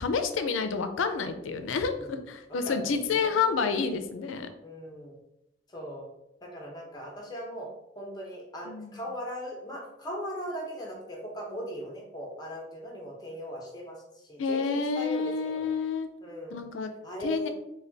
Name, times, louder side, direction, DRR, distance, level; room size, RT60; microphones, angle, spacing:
voice 1, 0.0-4.5 8.7-9.0 14.4-16.1 16.5-16.9 17.2-17.5, left 5 dB, 85° left, 8 dB, 0.4 m, -29 dB
voice 2, 2.5-3.7 4.6-5.2 5.7-6.1 6.4-7.7 8.0-14.0 14.3-15.7 16.2-16.6 17.0-17.5, equal, 20° left, -1 dB, 0.8 m, -39 dB
3.3 x 2.2 x 3.8 m, 0.88 s
head